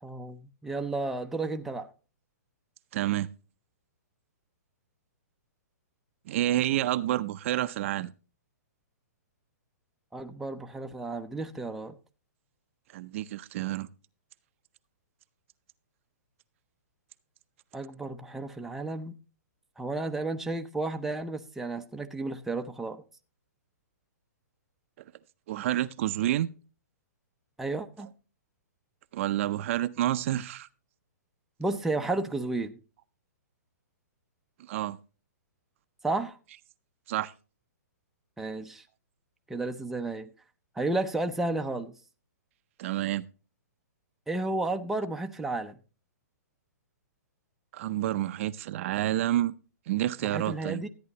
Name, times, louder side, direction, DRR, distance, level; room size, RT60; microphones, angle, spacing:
voice 1, 0.0-1.9 10.1-12.0 17.7-19.1 19.8-23.0 27.6-28.1 31.6-32.7 36.0-36.4 38.4-38.8 39.5-40.3 40.8-42.0 44.3-45.8 50.2-50.9, right 2 dB, 5° right, 0.6 m, -32 dB
voice 2, 2.9-3.3 6.3-8.1 12.9-13.9 25.5-26.5 29.1-30.7 34.7-35.0 37.1-37.3 42.8-43.2 47.7-49.5 49.9-50.8, right 13 dB, 45° right, 0.5 m, -29 dB
13.5 x 9.5 x 2.9 m
hypercardioid pair, 140°, 9 cm